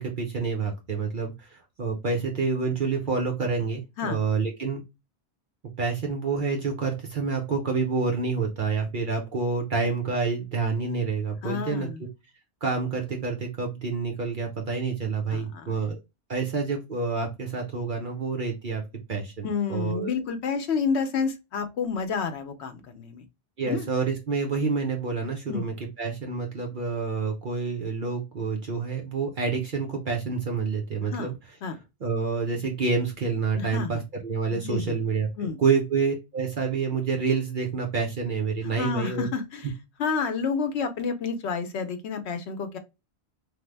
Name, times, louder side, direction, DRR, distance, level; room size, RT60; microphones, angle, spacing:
voice 1, 0.0-4.8 5.8-11.9 12.6-16.0 16.3-18.8 19.1-20.1 23.6-31.3 32.0-39.3, right 4 dB, 55° right, 0.8 m, -28 dB
voice 2, 11.4-12.0 15.3-15.7 19.4-23.2 23.7-23.9 25.5-25.6 31.1-31.3 31.6-31.8 33.6-34.0 34.5-35.0 35.4-35.6 38.8-39.7 40.0-42.8, left 5 dB, 90° left, 0.9 m, -29 dB
3.3 x 2.1 x 3.2 m
omnidirectional pair, 1.1 m